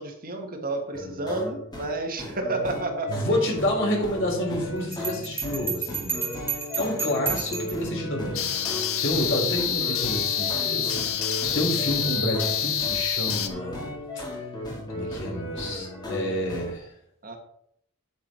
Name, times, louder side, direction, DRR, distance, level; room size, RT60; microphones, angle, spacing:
voice 1, 0.0-3.2 9.1-9.2 17.2-17.4, right 2 dB, 45° right, 3 dB, 1.8 m, -31 dB
sound 1, 0.9-16.7, left 1 dB, 20° left, 2.8 m, -36 dB
voice 2, 3.1-8.4 9.0-11.3 11.5-14.2 14.9-16.9, left 1 dB, 65° left, -1 dB, 4.1 m, -29 dB
Bell, 4.9-7.9, right 6 dB, 10° right, 2.7 m, -31 dB
sound 2, 8.3-13.5, left 8 dB, 80° left, 1.0 m, -27 dB
8.7 x 8.4 x 4.5 m, 0.70 s
head